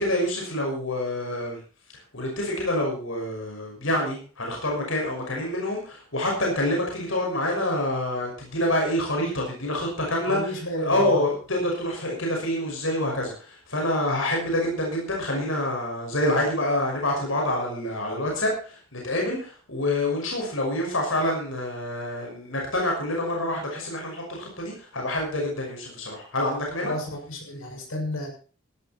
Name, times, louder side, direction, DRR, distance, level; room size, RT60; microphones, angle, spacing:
voice 1, 0.0-1.6 2.1-26.9, left 1 dB, 75° left, 0 dB, 6.0 m, -27 dB
voice 2, 10.3-11.2 26.8-28.3, equal, 90° left, 1 dB, 6.4 m, -31 dB
16.0 x 12.5 x 4.4 m, 0.38 s
head